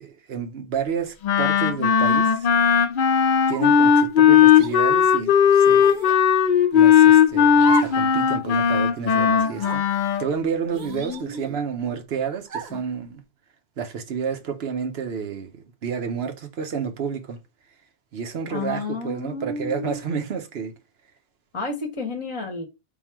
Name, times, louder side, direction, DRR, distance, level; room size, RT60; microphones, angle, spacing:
voice 1, 0.0-2.5 3.5-6.1 6.7-13.2 13.8-17.4 18.1-20.7, right 6 dB, 80° right, 1.0 m, -30 dB
Wind instrument woodwind instrument, 1.2-10.3, left 8 dB, 60° left, 0.7 m, -17 dB
sound 1, 3.5-3.9 4.6-4.8 5.8-6.2 7.6-8.1 8.4-8.5 9.4-9.8 10.7-11.6 12.5-12.9, right 5 dB, 50° right, 0.8 m, -34 dB
voice 2, 10.7-11.4 12.7-12.8 18.5-20.0 21.5-22.7, left 4 dB, 30° left, 0.9 m, -31 dB
3.6 x 2.3 x 4.5 m
omnidirectional pair, 1.1 m